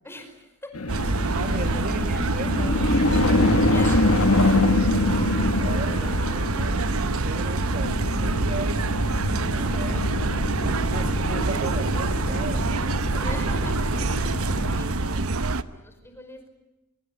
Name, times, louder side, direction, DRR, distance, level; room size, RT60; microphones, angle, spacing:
voice 1, 0.0-0.8 3.4-5.1 13.1-13.9 14.3-16.5, left 1 dB, 10° left, 6 dB, 5.0 m, -43 dB
sound 1, 0.7-14.8, left 2 dB, 75° left, 1.7 m, -26 dB
sound 2, 0.9-15.6, right 2 dB, 70° right, 1.0 m, -26 dB
voice 2, 1.3-3.6 4.1-4.7 5.6-6.8 7.2-8.8 9.5-13.4, right 2 dB, 40° right, 7 dB, 1.7 m, -36 dB
sound 3, 9.6-14.8, left 1 dB, 50° left, 1.7 m, -35 dB
23.5 x 23.0 x 9.4 m, 0.96 s
head